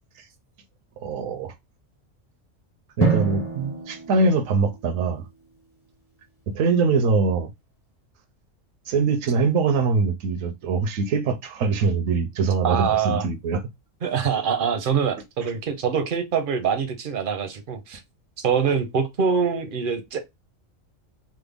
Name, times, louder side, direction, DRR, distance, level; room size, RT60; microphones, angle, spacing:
voice 1, 1.0-1.5 3.0-5.3 6.5-7.5 8.9-13.6, right 4 dB, 80° right, 1.0 m, -23 dB
Drum, 3.0-5.5, right 5 dB, 15° left, 0.5 m, -27 dB
voice 2, 12.6-13.2 14.0-18.0 18.4-20.2, right 6 dB, 55° right, 0.6 m, -24 dB
3.3 x 2.1 x 3.3 m
omnidirectional pair, 1.3 m